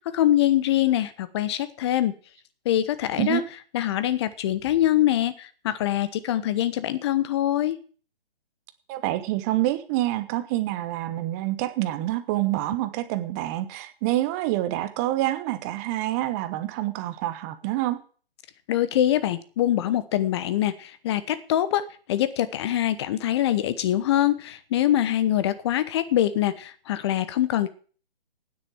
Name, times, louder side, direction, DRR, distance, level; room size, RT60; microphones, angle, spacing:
voice 1, 0.1-2.1 2.6-3.4 3.7-7.8 18.7-27.7, left 12 dB, 25° left, 14 dB, 1.0 m, -24 dB
voice 2, 8.9-18.0, right 15 dB, 15° right, 12 dB, 0.8 m, -27 dB
9.7 x 7.8 x 9.0 m, 0.41 s
figure-of-eight pair, 140°, 30 cm